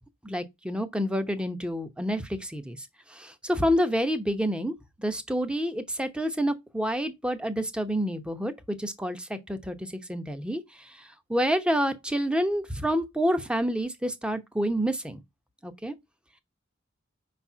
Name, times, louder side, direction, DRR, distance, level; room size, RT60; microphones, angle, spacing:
voice 1, 0.2-2.8 3.1-4.7 5.0-10.6 11.3-15.2 15.6-15.9, equal, 5° right, 0.9 m, -28 dB
5.3 x 4.2 x 6.0 m
head